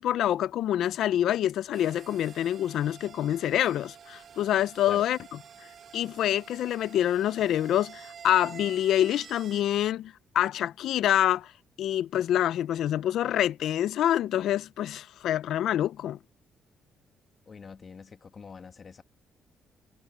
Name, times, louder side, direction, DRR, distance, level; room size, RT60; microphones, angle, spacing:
voice 1, 0.0-5.2 5.9-11.5 11.8-16.2, left 11 dB, 75° left, 0.5 m, -26 dB
sound 1, 1.7-9.6, right 7 dB, 60° right, 2.2 m, -49 dB
voice 2, 17.5-19.0, left 5 dB, 40° left, 1.8 m, -44 dB
cardioid pair, 90°, 0 cm